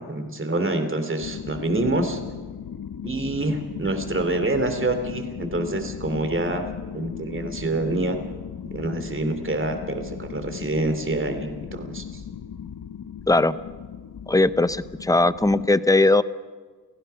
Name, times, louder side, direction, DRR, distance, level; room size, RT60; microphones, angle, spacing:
voice 1, 0.0-2.2 3.0-6.7 6.9-8.2 8.7-12.2, right 2 dB, 30° right, 7 dB, 2.9 m, -26 dB
sound 1, 1.2-15.7, left 8 dB, 70° left, 0.9 m, -37 dB
voice 2, 13.3-13.6 14.3-16.2, left 2 dB, 10° left, 14 dB, 0.6 m, -19 dB
29.5 x 16.5 x 5.7 m, 1.4 s
wide cardioid pair, 125°, 38 cm